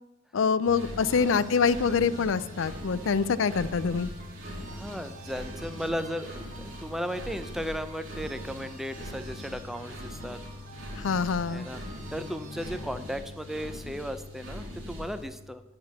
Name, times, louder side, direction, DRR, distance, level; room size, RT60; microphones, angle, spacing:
voice 1, 0.3-4.1 11.0-11.6, left 5 dB, 75° left, 16 dB, 0.5 m, -25 dB
sound 1, 0.7-15.2, left 1 dB, 75° right, 3.1 m, -41 dB
sound 2, 1.0-13.3, right 1 dB, 45° right, 1.3 m, -47 dB
voice 2, 1.1-1.5 4.7-10.4 11.5-11.8 12.1-15.6, equal, ahead, 10 dB, 0.5 m, -36 dB
10.0 x 5.7 x 7.3 m, 0.96 s
head